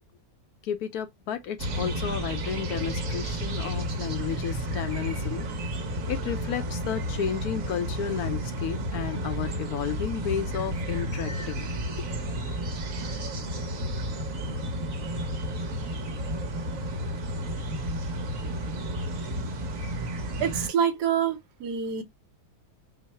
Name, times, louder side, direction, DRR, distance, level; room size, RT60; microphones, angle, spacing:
voice 1, 0.6-5.5 6.1-12.0, left 8 dB, 70° left, 1.0 m, -32 dB
sound 1, 1.6-20.7, right 1 dB, 55° right, 1.3 m, -32 dB
voice 2, 20.4-22.0, right 8 dB, 75° right, 1.3 m, -26 dB
4.6 x 2.1 x 4.2 m
omnidirectional pair, 1.8 m